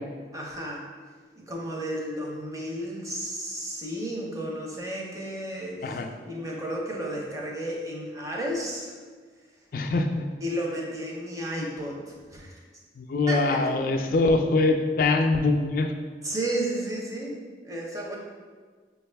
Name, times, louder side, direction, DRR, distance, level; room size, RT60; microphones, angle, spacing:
voice 1, 0.3-0.8 1.4-9.0 10.4-12.6 13.3-14.1 16.2-17.4 17.6-18.2, right 1 dB, 20° right, -2 dB, 0.6 m, -33 dB
voice 2, 9.7-10.3 13.0-15.9, left 3 dB, 50° left, 5 dB, 0.3 m, -23 dB
5.9 x 2.3 x 3.3 m, 1.5 s
head